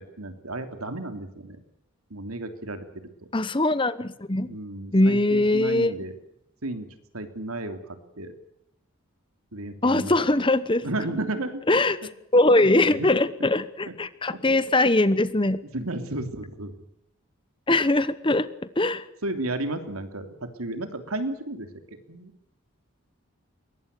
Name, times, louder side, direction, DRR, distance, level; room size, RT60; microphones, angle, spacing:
voice 1, 0.2-1.6 2.1-2.9 4.4-6.2 6.6-6.9 7.1-8.3 9.5-10.4 10.8-11.6 12.5-13.1 14.5-14.7 15.7-16.7 19.2-22.3, right 2 dB, 85° right, 7 dB, 3.1 m, -33 dB
voice 2, 3.3-4.6 4.9-5.9 9.8-10.9 11.7-12.0 12.3-15.6 17.7-18.5 18.8-19.1, left 2 dB, 25° left, 15 dB, 0.9 m, -21 dB
23.0 x 19.5 x 6.8 m, 0.80 s
head